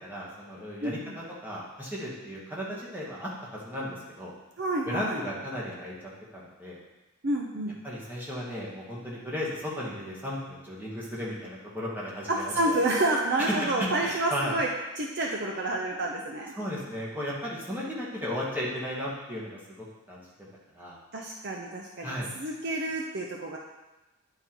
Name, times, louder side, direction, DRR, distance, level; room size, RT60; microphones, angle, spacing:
voice 1, 0.0-1.0 1.4-4.3 4.8-6.8 7.8-12.8 13.4-14.5 16.5-20.3 20.7-21.0 22.0-22.3, equal, 10° right, -6 dB, 1.5 m, -35 dB
voice 2, 0.8-1.2 4.6-5.2 7.2-7.7 12.3-14.7 15.0-16.5 21.1-23.6, right 2 dB, 50° right, 0 dB, 0.6 m, -29 dB
9.4 x 3.9 x 4.5 m, 1.1 s
head